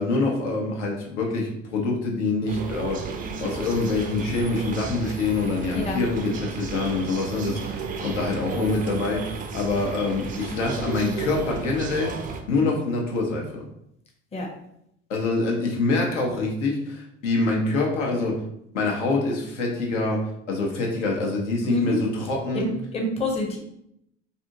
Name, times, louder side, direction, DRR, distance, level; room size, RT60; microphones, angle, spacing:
voice 1, 0.0-3.1 3.4-12.2 12.5-13.6 15.1-18.4 18.7-22.7, left 3 dB, 75° left, 0 dB, 0.8 m, -25 dB
sound 1, 2.5-12.4, right 5 dB, 25° right, 0.4 m, -33 dB
voice 2, 22.9-23.6, left 1 dB, 15° left, 0 dB, 0.7 m, -26 dB
2.6 x 2.5 x 2.6 m, 0.75 s
hypercardioid pair, 70°, 36 cm